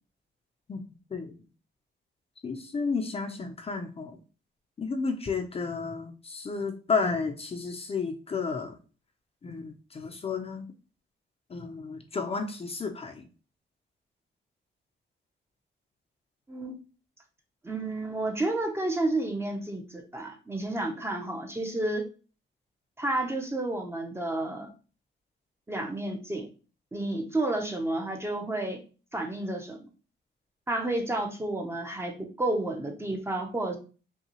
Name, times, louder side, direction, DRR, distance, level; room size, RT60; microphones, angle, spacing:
voice 1, 2.4-4.2 4.8-8.8 9.4-10.7 11.5-13.3, left 4 dB, 30° left, 4 dB, 0.6 m, -32 dB
voice 2, 17.6-22.0 23.0-24.7 25.7-26.5 26.9-28.8 29.1-29.8 30.7-33.8, right 2 dB, 15° right, 3 dB, 0.7 m, -31 dB
5.5 x 2.3 x 2.9 m, 0.35 s
cardioid pair, 135°, 19 cm